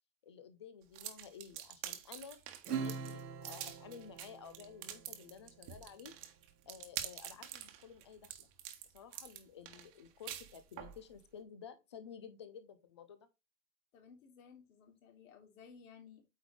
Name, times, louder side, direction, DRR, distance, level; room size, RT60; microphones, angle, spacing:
voice 1, 0.2-2.4 2.7-6.1 6.7-8.5 8.9-13.3, left 7 dB, 20° left, 0.4 m, -53 dB
sound 1, 0.9-11.0, right 11 dB, 35° right, 1.3 m, -46 dB
Acoustic guitar / Strum, 2.6-5.6, right 6 dB, 65° right, 1.4 m, -43 dB
voice 2, 13.9-16.3, left 6 dB, 55° left, 2.9 m, -57 dB
8.9 x 3.7 x 4.7 m
hypercardioid pair, 130°, 50 cm